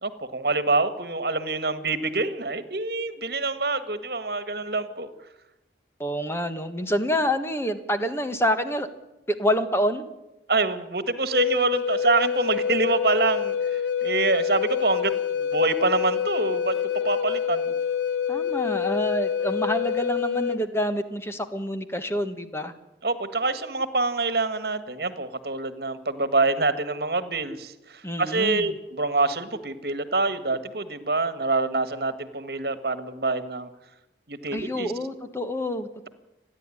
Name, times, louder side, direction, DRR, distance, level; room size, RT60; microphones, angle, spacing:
voice 1, 0.0-5.1 10.5-16.7 17.0-17.7 23.0-33.7 34.3-34.9, right 3 dB, 60° right, 12 dB, 1.7 m, -26 dB
voice 2, 6.0-8.9 9.3-10.0 18.3-22.7 28.0-28.7 34.5-36.1, equal, 15° left, 8 dB, 1.4 m, -27 dB
Wind instrument woodwind instrument, 11.3-20.6, left 8 dB, 80° left, 0.8 m, -27 dB
29.5 x 11.0 x 9.9 m, 0.96 s
head